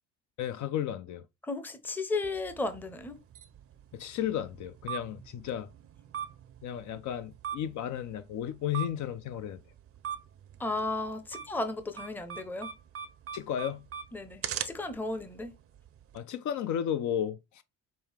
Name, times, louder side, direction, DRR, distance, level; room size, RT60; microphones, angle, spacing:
voice 1, 0.4-1.2 3.9-5.7 6.6-9.6 13.3-13.8 16.1-17.6, left 10 dB, 65° left, 0.5 m, -33 dB
voice 2, 1.4-3.2 10.6-12.7 14.1-15.5, left 2 dB, 5° left, 0.6 m, -34 dB
sound 1, 2.2-16.2, right 8 dB, 45° right, 0.5 m, -43 dB
5.4 x 2.3 x 3.3 m
cardioid pair, 100°, 32 cm